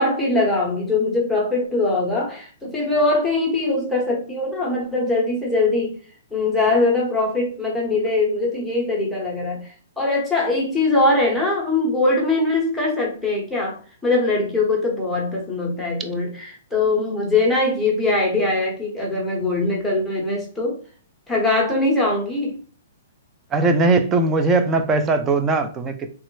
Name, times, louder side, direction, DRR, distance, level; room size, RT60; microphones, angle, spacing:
voice 1, 0.0-5.9 6.3-13.8 14.0-20.8 21.3-22.6, left 2 dB, ahead, -4 dB, 0.8 m, -21 dB
voice 2, 23.5-26.1, right 3 dB, 15° right, 8 dB, 0.4 m, -19 dB
3.3 x 2.0 x 3.1 m, 0.41 s
hypercardioid pair, 160°, 0 cm